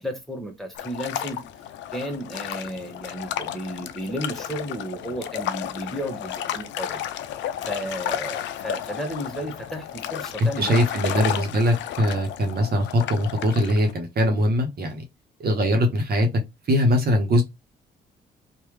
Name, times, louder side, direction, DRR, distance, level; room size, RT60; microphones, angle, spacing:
voice 1, 0.0-1.4 1.9-7.0 7.6-10.8 11.3-11.4, equal, ahead, 1.3 m, -33 dB
sound 1, 0.8-13.9, left 11 dB, 65° left, 0.5 m, -32 dB
voice 2, 10.4-15.0 15.4-16.3 16.7-17.4, equal, 50° right, 1.2 m, -21 dB
3.1 x 2.5 x 3.1 m
hypercardioid pair, 50°, 21 cm